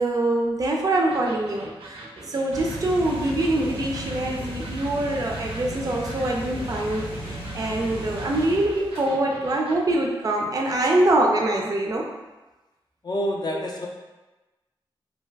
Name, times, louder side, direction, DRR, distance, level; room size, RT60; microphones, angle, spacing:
voice 1, 0.0-12.1, right 1 dB, 40° right, 0 dB, 0.4 m, -24 dB
Electric guitar, 1.1-9.8, right 1 dB, 90° right, 0.5 m, -42 dB
sound 1, 2.5-9.0, right 1 dB, 90° left, 0.9 m, -35 dB
voice 2, 13.0-13.9, equal, 45° left, 0 dB, 0.4 m, -28 dB
2.5 x 2.2 x 3.2 m, 1.1 s
wide cardioid pair, 110°, 10 cm